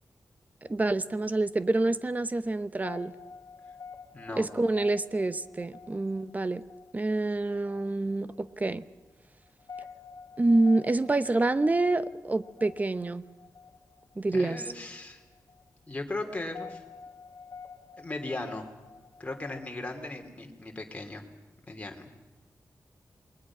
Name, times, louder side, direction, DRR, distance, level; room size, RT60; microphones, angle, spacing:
sound 1, 0.7-20.3, left 5 dB, 60° left, 1.5 m, -50 dB
voice 1, 0.7-3.1 4.4-6.6 6.9-8.8 10.4-13.2 14.2-14.6, right 2 dB, 25° right, 14 dB, 0.9 m, -27 dB
voice 2, 4.1-4.5 14.3-15.2 15.9-16.8 18.0-18.7 19.2-21.3 21.7-22.1, left 2 dB, 20° left, 3 dB, 3.1 m, -37 dB
28.0 x 21.5 x 6.1 m, 1.1 s
wide cardioid pair, 140°, 6 cm